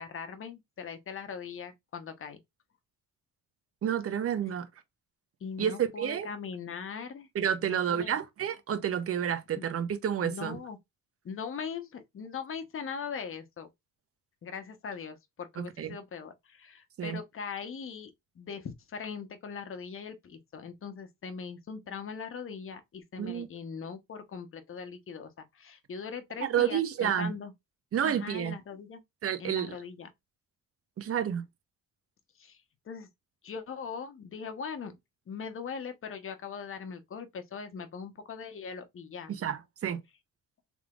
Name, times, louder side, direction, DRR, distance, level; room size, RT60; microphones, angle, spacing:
voice 1, 0.0-2.4 5.4-7.3 7.6-8.2 9.5-9.6 10.2-10.8 11.2-13.7 14.4-27.5 28.0-29.0 29.4-30.1 32.4-32.6 32.9-33.1 33.4-35.0 35.3-39.3, left 6 dB, 45° left, 1.0 m, -40 dB
voice 2, 3.8-4.7 5.6-6.3 7.3-10.6 15.6-15.9 17.0-17.2 23.2-23.5 26.4-27.3 27.9-28.5 29.2-29.7 31.0-31.4 39.3-40.0, right 9 dB, 50° right, 0.8 m, -30 dB
3.5 x 3.3 x 2.4 m
cardioid pair, 90°, 30 cm